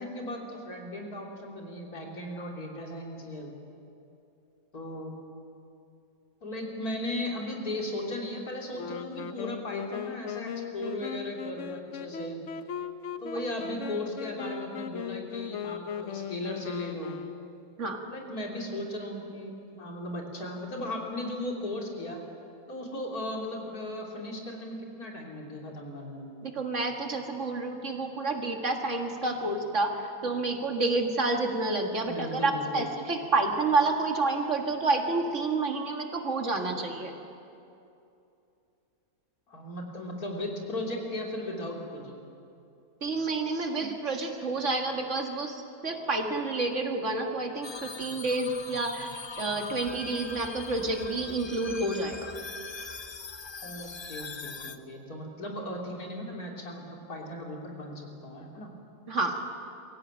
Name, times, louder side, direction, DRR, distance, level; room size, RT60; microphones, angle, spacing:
voice 1, 0.0-3.5 4.7-5.1 6.4-12.4 13.2-17.2 18.1-22.2 22.7-26.4 32.1-32.9 39.5-42.1 53.6-58.7, left 1 dB, 80° left, -1 dB, 3.6 m, -37 dB
Wind instrument woodwind instrument, 8.7-17.8, left 7 dB, 60° left, 1.1 m, -38 dB
voice 2, 26.4-37.1 43.0-49.1 49.4-52.3 59.1-59.4, right 3 dB, 55° right, 3 dB, 2.3 m, -29 dB
sound 1, 47.6-54.8, left 4 dB, 25° left, 0.6 m, -41 dB
24.0 x 15.5 x 9.0 m, 2.7 s
omnidirectional pair, 1.6 m